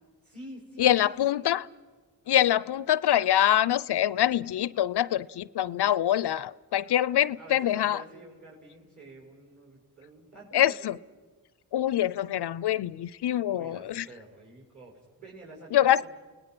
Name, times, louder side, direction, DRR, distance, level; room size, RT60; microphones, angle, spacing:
voice 1, 0.2-1.5 6.8-10.9 13.5-16.1, right 2 dB, 40° right, 6.0 m, -49 dB
voice 2, 0.8-1.6 2.3-8.0 10.5-11.0 11.7-14.1 15.7-16.1, left 11 dB, 65° left, 0.5 m, -25 dB
28.5 x 18.5 x 6.0 m
cardioid pair, 50°, 43 cm